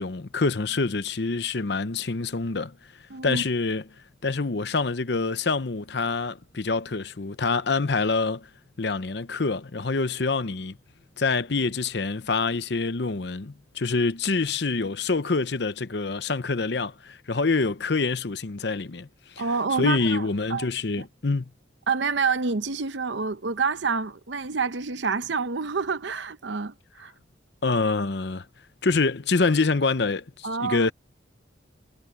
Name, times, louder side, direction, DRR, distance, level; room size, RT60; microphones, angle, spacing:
voice 1, 0.0-2.9 3.2-3.8 4.2-8.5 8.8-10.8 11.2-19.4 19.8-21.5 27.6-28.5 28.8-30.9, left 3 dB, 65° left, 0.8 m, -26 dB
voice 2, 3.1-3.4 19.4-20.7 21.9-27.1 30.4-30.9, right 4 dB, 70° right, 0.8 m, -28 dB
head